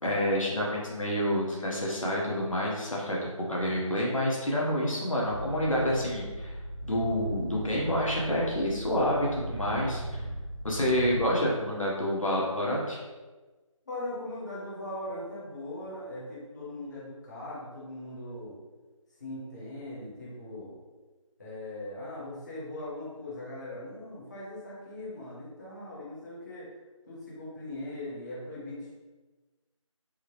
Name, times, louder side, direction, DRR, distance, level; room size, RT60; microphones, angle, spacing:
voice 1, 0.0-6.6 6.9-10.0 10.6-13.0, equal, 75° left, -4 dB, 0.9 m, -28 dB
sound 1, 5.3-11.3, right 1 dB, 30° right, 0.6 m, -38 dB
voice 2, 13.9-18.6 19.2-20.8 21.4-26.7 27.1-28.9, left 1 dB, 35° left, -8 dB, 0.9 m, -40 dB
3.5 x 2.1 x 3.1 m, 1.2 s
figure-of-eight pair, 165°, 17 cm